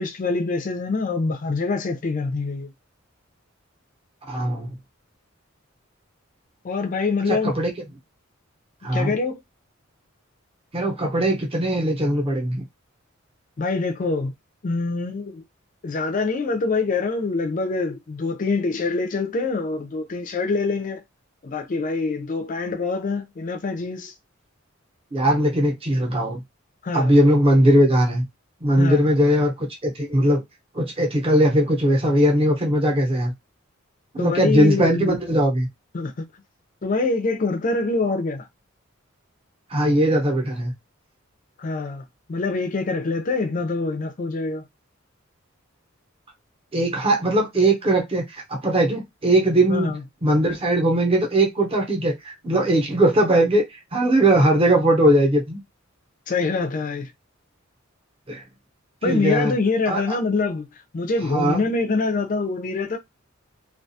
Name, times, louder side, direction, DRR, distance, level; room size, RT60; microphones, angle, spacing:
voice 1, 0.0-2.7 6.6-7.5 8.9-9.4 13.6-14.3 14.6-15.4 15.8-21.0 21.4-24.1 26.8-27.2 28.8-29.0 34.2-35.2 35.9-36.2 36.8-38.5 41.6-42.0 42.3-44.6 49.7-50.0 56.3-57.1 59.0-60.7 60.9-63.0, left 3 dB, 40° left, 0.4 m, -25 dB
voice 2, 4.3-4.8 7.3-7.7 8.8-9.1 10.7-12.6 25.1-26.4 26.9-28.2 28.6-30.4 30.7-33.3 34.1-35.7 39.7-40.7 46.7-49.9 50.2-55.6 58.3-58.4 59.0-59.5 59.9-60.2 61.3-61.6, right 1 dB, 30° right, 0.8 m, -20 dB
2.3 x 2.3 x 2.7 m
head